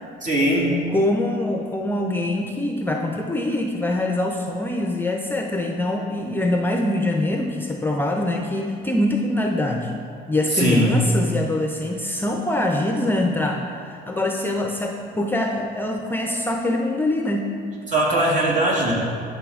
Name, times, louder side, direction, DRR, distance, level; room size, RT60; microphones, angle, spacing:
voice 1, 0.2-0.8 10.5-11.0 17.9-18.9, right 1 dB, 50° right, -4 dB, 2.3 m, -20 dB
voice 2, 0.9-9.9 10.3-17.5, left 1 dB, 10° left, 2 dB, 0.5 m, -24 dB
12.0 x 5.7 x 3.6 m, 2.3 s
cardioid pair, 110°, 17 cm